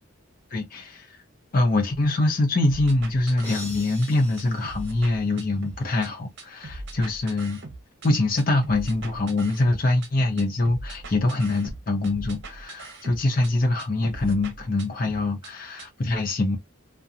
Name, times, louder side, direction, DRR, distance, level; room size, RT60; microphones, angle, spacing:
voice 1, 0.5-1.1 1.5-7.6 8.0-16.6, left 2 dB, 40° left, 0.6 m, -24 dB
sound 1, 2.6-4.1 4.4-6.1 6.4-8.1 8.4-10.1 10.4-13.5 13.8-15.5 15.8-15.9, right 2 dB, 55° right, 0.7 m, -40 dB
sound 2, 3.4-5.8, left 1 dB, 10° left, 1.4 m, -43 dB
2.7 x 2.2 x 2.4 m
head